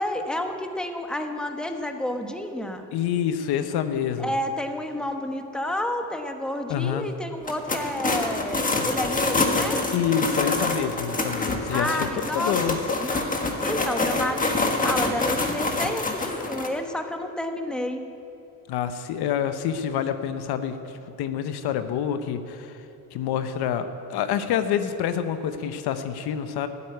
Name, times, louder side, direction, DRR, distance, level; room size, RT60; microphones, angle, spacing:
voice 1, 0.0-2.9 4.2-9.8 11.7-12.5 12.9-13.3 13.6-18.0, left 1 dB, ahead, 5 dB, 1.0 m, -30 dB
voice 2, 2.9-4.3 6.7-7.1 9.9-12.0 12.3-12.8 18.7-20.8 21.2-22.8 23.1-26.7, left 9 dB, 90° left, 9 dB, 0.9 m, -27 dB
sound 1, 7.4-16.7, left 2 dB, 20° left, 1.5 m, -26 dB
12.5 x 8.4 x 9.6 m, 2.9 s
cardioid pair, 115°, 38 cm